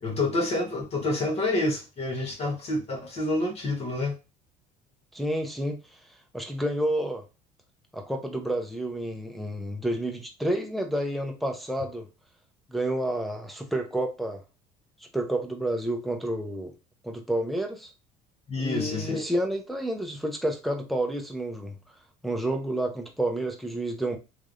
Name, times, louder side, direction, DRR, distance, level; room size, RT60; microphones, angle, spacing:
voice 1, 0.0-4.1 18.5-19.2, left 2 dB, 35° left, 0.9 m, -28 dB
voice 2, 5.1-5.8 6.3-7.2 7.9-12.1 12.7-14.4 15.1-16.7 17.0-17.9 18.6-21.8 22.2-24.2, right 1 dB, ahead, 0.5 m, -29 dB
3.1 x 2.5 x 2.5 m
cardioid pair, 115°, 17 cm